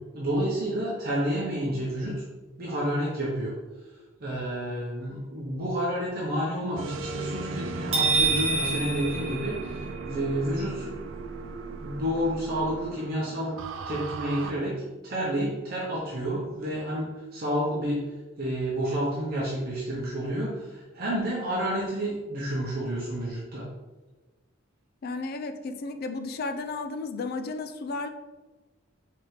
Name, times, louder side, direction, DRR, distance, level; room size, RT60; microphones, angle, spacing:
voice 1, 0.1-2.2 2.6-3.6 4.2-11.0 11.8-13.6 13.9-18.1 18.4-23.7, equal, 45° right, -5 dB, 0.8 m, -30 dB
sound 1, 6.8-14.5, right 3 dB, 65° right, 0.3 m, -36 dB
sound 2, 7.9-10.1, right 4 dB, 30° right, 1.4 m, -26 dB
voice 2, 25.0-28.1, left 3 dB, 45° left, 9 dB, 0.3 m, -33 dB
4.7 x 3.4 x 3.2 m, 1.2 s
head